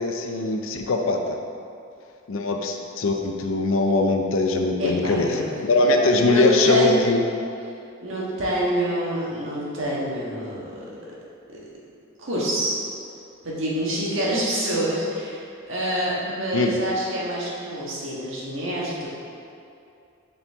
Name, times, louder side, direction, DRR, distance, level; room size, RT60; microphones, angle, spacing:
voice 1, 0.0-1.4 2.3-5.4 5.7-7.2 16.5-16.8, left 2 dB, 70° left, 3 dB, 0.5 m, -21 dB
voice 2, 4.8-5.5 6.2-7.0 8.0-10.8 11.5-11.6 12.2-12.8 13.4-15.4 15.7-19.1, equal, 65° right, -6 dB, 1.4 m, -26 dB
6.9 x 4.2 x 3.5 m, 2.6 s
head